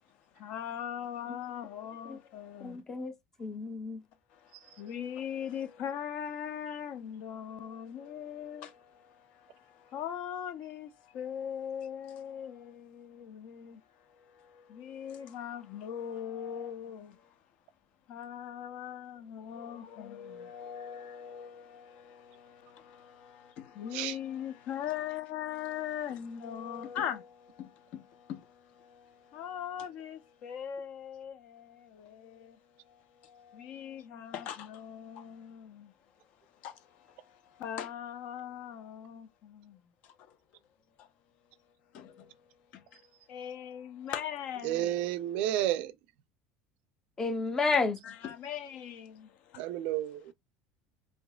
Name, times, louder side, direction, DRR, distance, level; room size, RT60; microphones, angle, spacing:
voice 1, 0.3-2.8 4.3-17.3 18.1-35.9 36.5-40.4 41.0-41.1 41.9-42.5 42.7-44.9 48.0-49.6, left 9 dB, 60° left, 0.7 m, -41 dB
voice 2, 2.6-3.1 3.4-4.0 47.2-48.0, left 4 dB, 20° left, 0.7 m, -30 dB
voice 3, 44.6-45.9 49.6-50.3, right 13 dB, 65° right, 0.4 m, -31 dB
5.3 x 2.8 x 2.3 m
cardioid pair, 135°, 2 cm